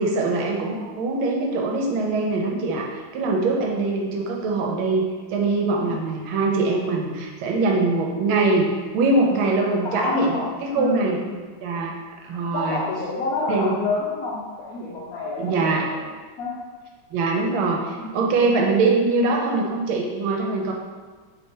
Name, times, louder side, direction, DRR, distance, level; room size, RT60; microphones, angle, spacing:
voice 1, 0.0-8.7 8.9-11.2 11.6-11.9 12.2-12.8 13.5-13.8 15.4-15.8 17.1-20.7, right 3 dB, 90° right, 0 dB, 1.5 m, -23 dB
voice 2, 9.6-10.5 10.7-11.5 12.5-16.0 16.4-16.6 18.0-18.3, left 3 dB, 75° left, -5 dB, 0.8 m, -29 dB
3.4 x 2.7 x 4.3 m, 1.5 s
omnidirectional pair, 2.2 m